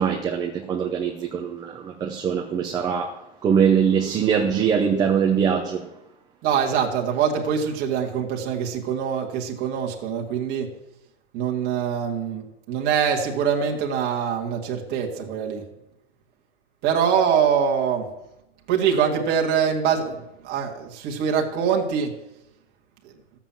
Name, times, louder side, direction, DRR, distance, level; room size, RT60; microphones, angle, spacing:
voice 1, 0.0-3.1 3.4-5.9, right 7 dB, 10° right, 0.7 m, -22 dB
voice 2, 6.4-10.7 11.3-15.6 16.8-18.1 18.7-22.1, right 7 dB, 30° right, 1.9 m, -24 dB
13.5 x 7.4 x 7.5 m
supercardioid pair, 165°, 35 cm